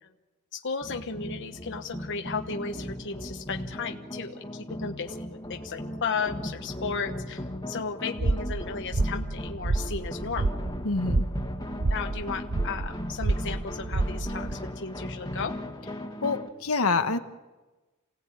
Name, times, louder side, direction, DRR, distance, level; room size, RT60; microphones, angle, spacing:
voice 1, 0.5-5.2 5.5-10.6 11.9-15.5, left 5 dB, 55° left, 4 dB, 1.1 m, -34 dB
sound 1, 0.8-16.5, left 1 dB, 20° left, 2.1 m, -38 dB
sound 2, 8.2-14.6, right 2 dB, 90° right, 1.0 m, -29 dB
voice 2, 10.8-11.2 16.2-17.2, left 3 dB, 75° left, 7 dB, 1.4 m, -26 dB
28.0 x 17.5 x 8.9 m, 1.2 s
head